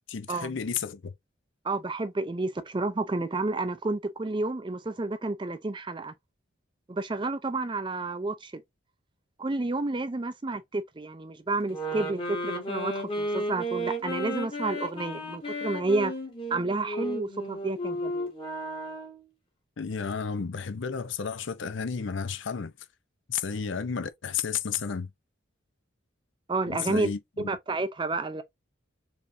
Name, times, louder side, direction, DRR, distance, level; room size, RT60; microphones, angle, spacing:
voice 1, 0.1-1.1 19.8-22.7 23.3-25.1 26.7-27.5, left 6 dB, 65° left, 0.6 m, -32 dB
voice 2, 1.6-6.1 6.9-8.6 9.4-16.1 16.5-18.3 26.5-27.1 27.4-28.4, right 2 dB, 25° right, 0.4 m, -30 dB
sound 1, 11.7-19.3, equal, 25° left, 1.3 m, -33 dB
4.2 x 3.4 x 2.6 m
head